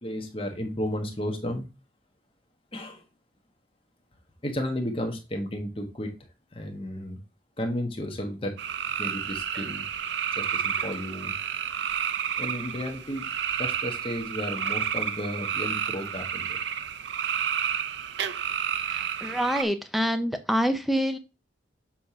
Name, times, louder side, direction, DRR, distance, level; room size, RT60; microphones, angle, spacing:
voice 1, 0.0-1.7 2.7-3.0 4.4-6.1 6.5-7.2 7.6-8.5 9.0-9.9 10.3-11.4 12.4-13.2 13.6-16.6, equal, 30° left, 4 dB, 1.1 m, -33 dB
sound 1, 8.6-19.6, right 8 dB, 70° right, 0.5 m, -30 dB
voice 2, 18.9-21.2, equal, ahead, 8 dB, 0.5 m, -26 dB
7.4 x 2.9 x 4.8 m, 0.28 s
head